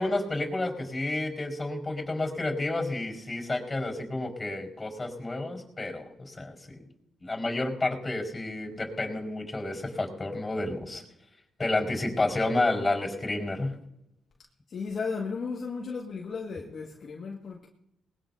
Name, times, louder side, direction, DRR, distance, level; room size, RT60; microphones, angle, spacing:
voice 1, 0.0-6.8 7.2-11.0 11.6-13.7, left 2 dB, 25° left, 4.8 m, -30 dB
voice 2, 14.7-17.7, left 5 dB, 55° left, 1.9 m, -35 dB
21.0 x 20.0 x 2.8 m
cardioid pair, 70°, 0 cm